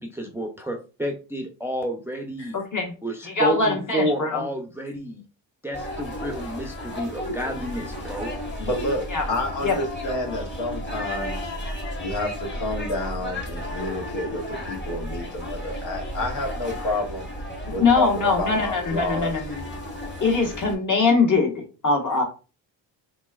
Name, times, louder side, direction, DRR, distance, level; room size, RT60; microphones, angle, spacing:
voice 1, 0.0-2.6 3.0-5.2 5.6-8.3, right 1 dB, 5° right, 2 dB, 0.5 m, -30 dB
voice 2, 2.5-2.9 3.2-4.4 9.1-9.3 9.6-9.8 17.8-19.6 20.2-21.5 21.8-22.2, left 4 dB, 40° left, 1 dB, 1.3 m, -22 dB
sound 1, 5.7-20.8, equal, 25° left, 1.2 m, -33 dB
voice 3, 8.6-11.5 12.0-17.3 17.7-19.3, left 1 dB, 75° left, 1 dB, 1.2 m, -29 dB
3.3 x 2.9 x 2.3 m, 0.34 s
cardioid pair, 75°, 45 cm